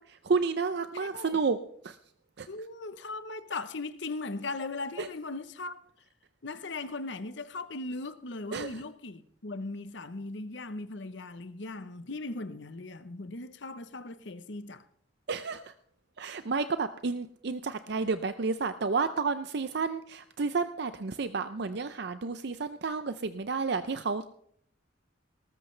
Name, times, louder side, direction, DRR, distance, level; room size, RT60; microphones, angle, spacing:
voice 1, 0.2-1.6 1.8-2.0 2.4-2.5 5.0-5.1 8.5-8.7 15.3-15.6 16.2-24.3, right 4 dB, 60° right, 0.5 m, -31 dB
voice 2, 0.9-1.4 2.5-5.8 6.4-14.8, left 3 dB, 70° left, 0.9 m, -38 dB
19.0 x 13.5 x 3.3 m
head